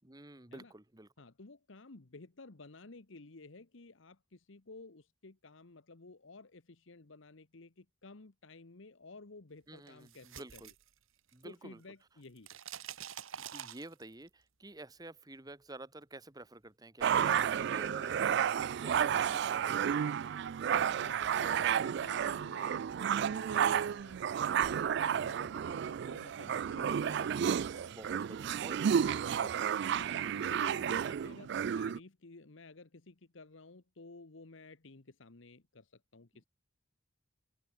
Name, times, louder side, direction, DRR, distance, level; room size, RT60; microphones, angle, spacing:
voice 1, 0.0-1.1 9.7-10.7 11.3-11.8 13.4-20.4 26.9-29.0, right 2 dB, 20° right, 1.3 m, -51 dB
voice 2, 1.2-10.7 11.4-12.6 20.9-24.2 24.7-27.9 28.9-29.6 29.9-36.5, left 3 dB, 70° left, 1.2 m, -54 dB
sound 1, 9.9-11.6 11.8-14.3, right 9 dB, 85° right, 1.4 m, -47 dB
sound 2, 17.0-32.0, right 8 dB, 60° right, 0.3 m, -32 dB
head